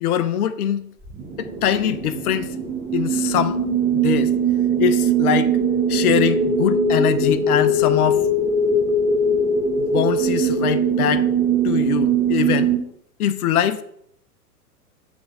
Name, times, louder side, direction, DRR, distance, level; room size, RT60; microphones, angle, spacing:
voice 1, 0.0-0.9 1.4-2.6 2.9-3.6 3.9-4.3 4.8-5.6 5.9-8.3 9.8-11.3 11.6-12.8 13.2-13.8, left 10 dB, 65° left, 0.7 m, -22 dB
sound 1, 1.0-12.8, right 3 dB, 15° right, 1.0 m, -20 dB
6.2 x 3.5 x 4.8 m
hypercardioid pair, 115°, 48 cm